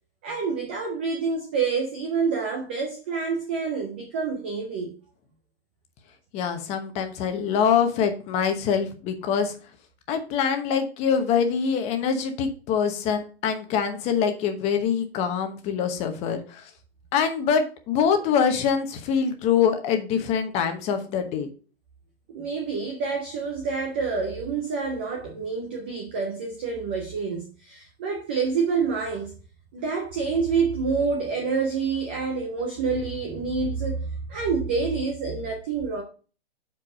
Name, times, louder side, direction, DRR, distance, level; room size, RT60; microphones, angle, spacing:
voice 1, 0.2-4.9 22.3-29.3 29.7-36.0, right 5 dB, 10° right, 0.3 m, -27 dB
voice 2, 6.3-9.5 10.1-16.7 17.1-21.5, left 7 dB, 20° left, 1.0 m, -24 dB
7.3 x 4.7 x 5.2 m
hypercardioid pair, 155°, 32 cm